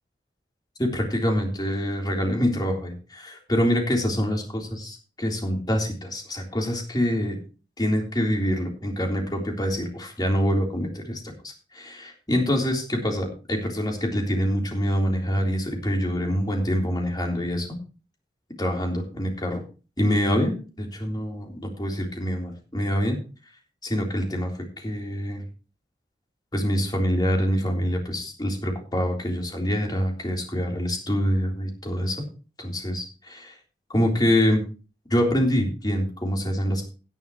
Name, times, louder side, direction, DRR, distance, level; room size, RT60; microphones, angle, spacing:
voice 1, 0.8-7.4 7.8-17.8 18.6-19.6 20.0-23.2 23.8-25.4 26.5-32.2 32.6-33.5 33.9-34.6 35.1-36.8, equal, 25° left, 1 dB, 3.6 m, -25 dB
18.0 x 9.0 x 3.1 m, 0.34 s
head